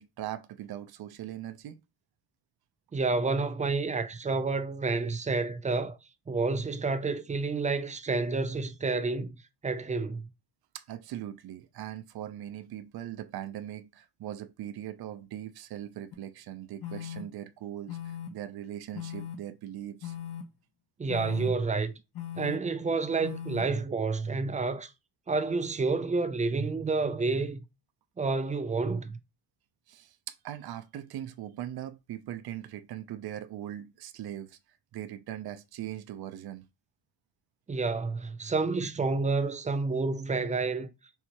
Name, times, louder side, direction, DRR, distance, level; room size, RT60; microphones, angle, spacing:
voice 1, 0.0-1.8 10.7-20.1 29.9-34.6 34.9-36.6, right 12 dB, 60° right, 0.6 m, -40 dB
voice 2, 2.9-6.0 6.3-9.4 9.6-10.3 21.0-21.9 22.4-24.9 25.3-27.6 28.2-29.2 37.7-40.9, right 3 dB, 20° right, 0.4 m, -29 dB
sound 1, 16.1-16.2 16.8-17.2 17.9-18.3 18.9-19.3 20.0-20.4 21.1-21.5 22.1-22.6 23.2-23.6, left 10 dB, 65° left, 1.0 m, -38 dB
4.7 x 3.3 x 2.9 m
cardioid pair, 125°, 42 cm